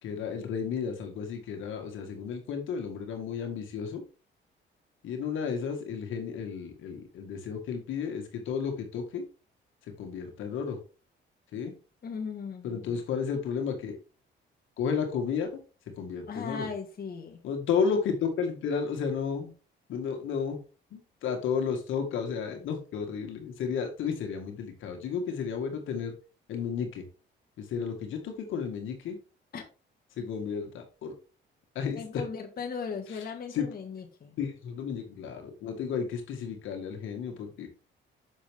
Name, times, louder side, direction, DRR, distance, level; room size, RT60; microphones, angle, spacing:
voice 1, 0.0-4.0 5.0-9.2 10.0-10.8 11.5-11.7 12.6-14.0 14.8-15.6 16.0-16.7 17.4-19.5 19.9-20.6 20.9-26.1 26.5-27.0 27.6-29.2 30.2-31.1 31.8-32.0 33.5-33.7 34.4-37.7, left 6 dB, 80° left, 2.0 m, -32 dB
voice 2, 12.0-13.0 16.3-17.4 29.5-29.6 31.9-34.4, left 5 dB, 50° left, 1.5 m, -37 dB
7.3 x 6.1 x 3.5 m
cardioid pair, 90°, 20 cm